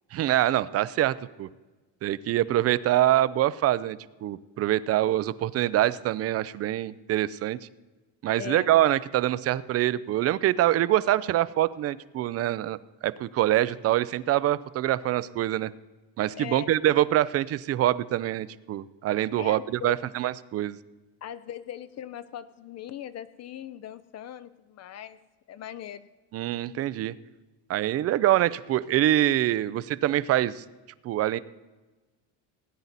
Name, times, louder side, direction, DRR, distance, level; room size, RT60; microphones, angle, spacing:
voice 1, 0.1-1.5 2.0-7.6 8.2-15.7 16.2-20.8 26.3-27.1 27.7-30.6 31.0-31.4, right 13 dB, 35° right, 18 dB, 0.4 m, -25 dB
voice 2, 8.4-8.7 16.4-16.7 19.4-20.0 21.2-25.2 25.5-26.1, left 10 dB, 40° left, 14 dB, 0.5 m, -39 dB
17.5 x 9.5 x 4.0 m, 1.2 s
cardioid pair, 135°, 43 cm